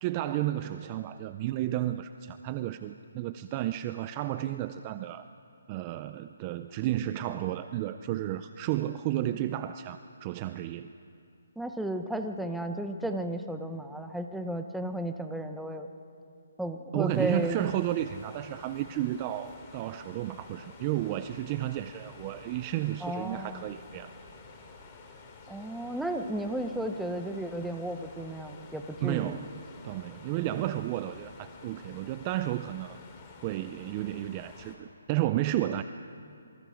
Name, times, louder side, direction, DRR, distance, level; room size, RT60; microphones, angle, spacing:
voice 1, 0.0-5.3 5.7-10.9 16.9-24.1 29.0-29.6 29.8-33.0 33.4-35.8, right 14 dB, 20° right, 11 dB, 0.4 m, -32 dB
voice 2, 11.6-15.9 16.6-17.7 23.0-23.6 25.5-29.3, right 1 dB, ahead, 5 dB, 0.8 m, -34 dB
sound 1, 17.1-34.8, left 4 dB, 20° left, 2.5 m, -50 dB
27.5 x 24.5 x 5.1 m, 2.6 s
hypercardioid pair, 170°, 0 cm